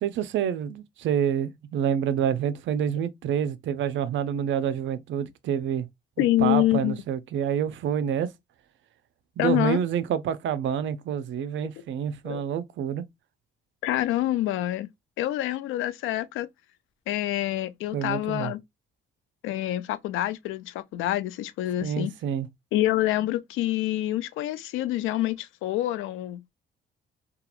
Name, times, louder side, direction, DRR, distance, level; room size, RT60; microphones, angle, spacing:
voice 1, 0.0-5.9 6.4-8.3 9.4-13.0 17.9-18.5 21.8-22.5, right 9 dB, 75° right, 0.5 m, -27 dB
voice 2, 6.2-7.0 9.4-9.8 12.2-12.4 13.8-14.9 15.2-16.5 17.1-18.6 19.4-22.1 22.7-26.5, left 14 dB, 90° left, 0.4 m, -26 dB
2.9 x 2.3 x 2.4 m
cardioid pair, 90°, 20 cm